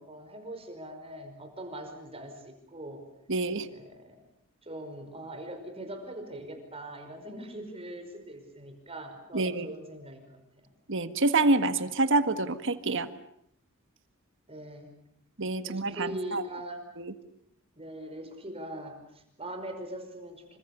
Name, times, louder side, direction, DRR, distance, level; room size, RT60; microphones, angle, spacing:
voice 1, 0.0-3.0 3.7-4.2 4.6-10.4 14.5-14.9 15.6-16.9 17.8-20.6, right 1 dB, 30° right, 6 dB, 5.3 m, -41 dB
voice 2, 3.3-3.7 9.3-9.7 10.9-13.1 15.4-16.4 17.0-17.1, right 2 dB, 60° right, 10 dB, 1.6 m, -27 dB
28.0 x 25.5 x 6.7 m, 0.74 s
head